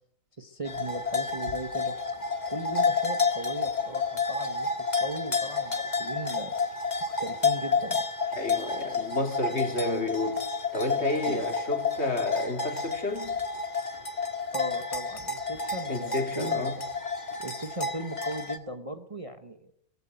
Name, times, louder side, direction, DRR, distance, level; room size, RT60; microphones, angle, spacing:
voice 1, 0.4-2.0 2.5-6.5 7.1-8.0 11.3-11.4 14.5-16.7 17.4-19.7, right 2 dB, 25° right, 8 dB, 1.1 m, -38 dB
sound 1, 0.6-18.6, left 4 dB, 30° left, 1.8 m, -30 dB
voice 2, 8.3-10.4 10.7-13.4 15.9-16.7, left 1 dB, 50° left, 5 dB, 3.4 m, -31 dB
18.0 x 15.5 x 9.1 m, 0.70 s
omnidirectional pair, 1.5 m